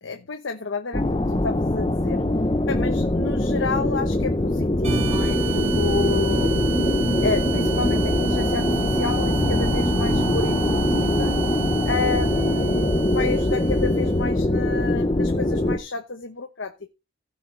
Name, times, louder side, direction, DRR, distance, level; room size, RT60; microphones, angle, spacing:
voice 1, 0.0-2.2 2.7-6.5 7.2-11.3 11.9-16.9, left 4 dB, 80° left, 1.0 m, -30 dB
sound 1, 0.9-15.8, left 1 dB, 25° left, 0.8 m, -23 dB
sound 2, 4.8-14.2, right 3 dB, 35° right, 2.2 m, -28 dB
16.5 x 6.1 x 3.2 m
head